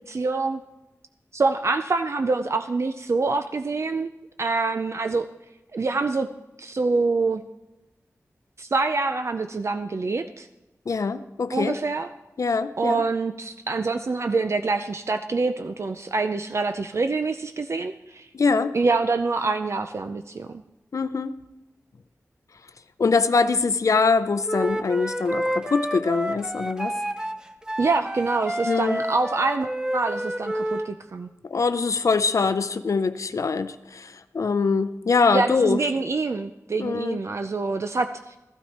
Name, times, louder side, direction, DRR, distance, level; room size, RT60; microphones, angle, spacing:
voice 1, 0.1-0.6 1.3-4.1 4.4-5.3 5.7-6.3 6.6-7.4 8.6-10.5 11.5-12.1 12.8-18.3 18.7-20.6 27.8-31.3 35.3-38.3, right 3 dB, 55° right, 7 dB, 0.5 m, -25 dB
voice 2, 10.9-11.8 12.4-13.0 18.3-18.7 20.9-21.3 23.0-27.0 28.6-29.0 31.5-35.8 36.8-37.2, left 4 dB, 70° left, 12 dB, 0.5 m, -23 dB
Wind instrument woodwind instrument, 24.4-30.9, right 1 dB, 15° right, 0.7 m, -29 dB
14.5 x 12.5 x 4.3 m, 1.0 s
wide cardioid pair, 95°, 6 cm